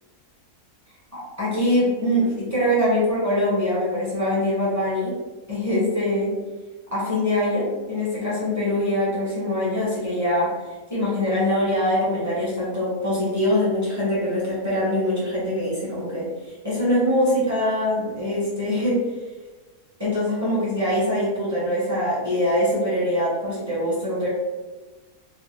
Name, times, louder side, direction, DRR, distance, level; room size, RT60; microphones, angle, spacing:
voice 1, 1.1-5.1 5.5-6.3 6.9-10.5 10.9-16.3 16.6-19.0 20.0-24.3, left 1 dB, 15° right, -8 dB, 1.0 m, -23 dB
3.3 x 2.2 x 3.1 m, 1.2 s
omnidirectional pair, 1.7 m